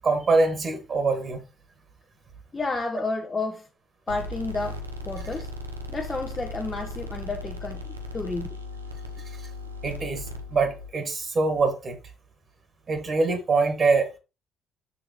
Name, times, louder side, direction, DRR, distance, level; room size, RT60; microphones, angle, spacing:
voice 1, 0.0-1.4 9.8-10.2 10.5-12.0 12.9-14.1, right 3 dB, 40° right, 1.8 m, -24 dB
voice 2, 2.5-3.7 4.1-5.5 5.9-8.6, left 3 dB, 25° left, 1.3 m, -31 dB
sound 1, 4.1-10.9, left 1 dB, 90° right, 0.7 m, -37 dB
7.0 x 6.2 x 3.1 m
figure-of-eight pair, 45°, 0 cm